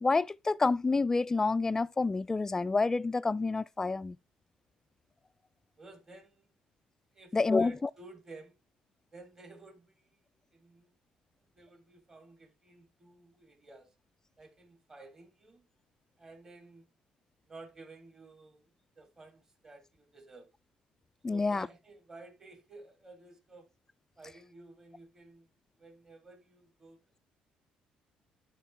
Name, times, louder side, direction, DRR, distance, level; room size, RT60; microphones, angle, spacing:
voice 1, 0.0-4.2 7.3-7.7 21.2-21.7, left 3 dB, 20° left, 0.4 m, -28 dB
voice 2, 5.8-6.5 7.1-8.6 9.1-10.2 10.5-10.9 11.5-13.9 14.4-15.7 16.2-16.8 17.5-18.7 19.0-20.5 21.3-23.7 24.2-25.5 25.8-27.0, right 2 dB, 25° right, 3.4 m, -53 dB
11.5 x 4.5 x 3.4 m
cardioid pair, 95°, 3 cm